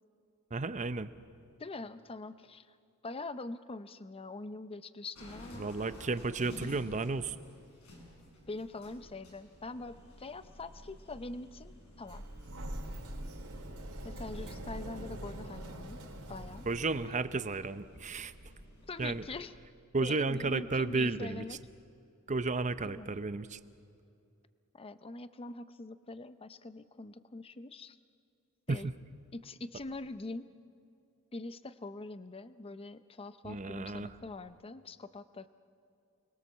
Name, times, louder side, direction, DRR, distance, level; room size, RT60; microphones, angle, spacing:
voice 1, 0.5-1.1 5.6-7.4 16.7-18.3 19.0-19.2 19.9-21.4 22.3-23.6 28.7-28.8 33.4-34.1, right 3 dB, 35° right, 12 dB, 0.8 m, -33 dB
voice 2, 1.6-2.8 3.0-5.7 8.5-12.2 14.0-16.0 16.3-16.6 18.9-19.5 20.0-21.6 22.8-23.1 24.7-28.0 28.7-28.9 29.3-30.5 31.3-35.5, left 2 dB, 25° left, 12 dB, 0.7 m, -43 dB
sound 1, 5.1-19.4, left 1 dB, 80° left, 7.2 m, -53 dB
Sliding door, 12.1-17.1, right 1 dB, 80° right, 3.7 m, -43 dB
29.5 x 21.5 x 7.3 m, 2.5 s
head